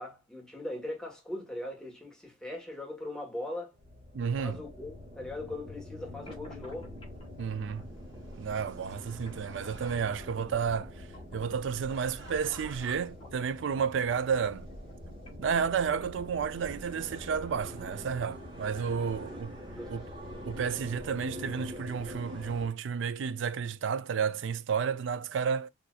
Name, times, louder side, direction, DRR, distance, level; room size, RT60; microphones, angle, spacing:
voice 1, 0.0-3.7 4.4-6.9 19.3-19.4 19.7-19.9, left 1 dB, 5° left, 1.3 m, -40 dB
sound 1, 3.7-22.7, equal, 25° right, 1.3 m, -45 dB
voice 2, 4.1-4.6 7.4-7.9 8.3-11.1 11.3-14.7 15.4-19.5 19.9-20.1 20.5-25.7, right 6 dB, 65° right, 0.4 m, -31 dB
sound 2, 6.3-18.3, left 2 dB, 30° left, 1.6 m, -55 dB
sound 3, 7.8-10.4 11.8-13.0, right 3 dB, 85° right, 1.5 m, -53 dB
4.1 x 2.6 x 2.3 m
head